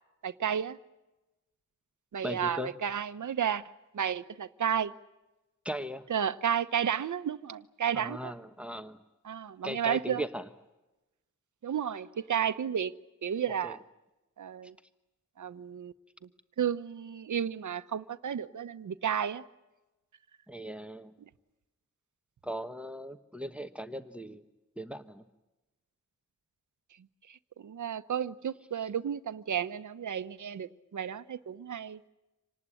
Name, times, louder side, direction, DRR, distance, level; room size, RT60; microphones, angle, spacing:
voice 1, 0.2-0.8 2.1-4.9 6.1-8.3 9.2-10.2 11.6-12.9 13.2-13.8 14.4-14.8 15.4-15.9 16.2-16.3 16.6-19.4 21.2-21.3 26.9-32.0, right 8 dB, 70° right, 1.0 m, -32 dB
voice 2, 2.2-2.7 5.6-6.1 7.9-9.0 9.6-10.5 13.6-13.8 14.6-14.7 20.5-21.1 22.4-24.4 24.8-25.2 28.8-28.9, equal, 5° right, 1.1 m, -38 dB
26.5 x 19.0 x 9.9 m
wide cardioid pair, 155°, 31 cm